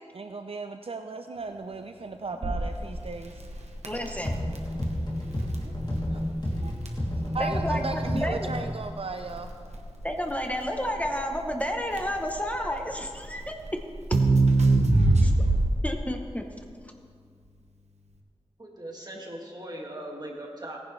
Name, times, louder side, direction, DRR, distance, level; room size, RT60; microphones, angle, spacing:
voice 1, 0.1-3.4 6.1-6.2 6.6-9.5, right 3 dB, 60° right, 6 dB, 0.5 m, -36 dB
Crackle, 2.4-16.0, right 2 dB, 90° right, 1.1 m, -26 dB
voice 2, 3.8-4.4 7.4-8.5 10.0-13.5 15.2-15.3 15.8-16.5, equal, 15° left, 3 dB, 0.9 m, -31 dB
sound 1, 4.2-8.8, left 1 dB, 45° left, 2.8 m, -30 dB
voice 3, 18.6-20.8, right 1 dB, 40° right, -1 dB, 2.1 m, -39 dB
17.5 x 10.5 x 3.3 m, 2.1 s
wide cardioid pair, 70°, 11 cm